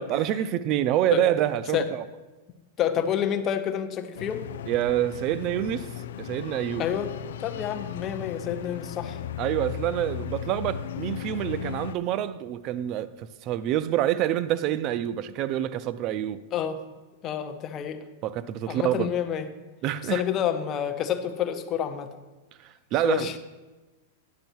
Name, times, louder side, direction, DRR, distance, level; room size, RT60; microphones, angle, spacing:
voice 1, 0.0-2.0 4.7-5.9 6.2-6.9 9.4-16.4 18.2-19.1 19.8-20.2 22.9-23.3, right 12 dB, 35° right, 0.4 m, -27 dB
voice 2, 2.8-4.4 6.8-7.1 7.4-9.2 16.5-16.8 17.2-18.0 18.7-19.5 20.1-22.1 23.0-23.4, left 9 dB, 25° left, 0.6 m, -28 dB
sound 1, 4.2-12.0, left 10 dB, 75° left, 0.4 m, -36 dB
10.5 x 6.3 x 4.5 m
supercardioid pair, 155°, 0 cm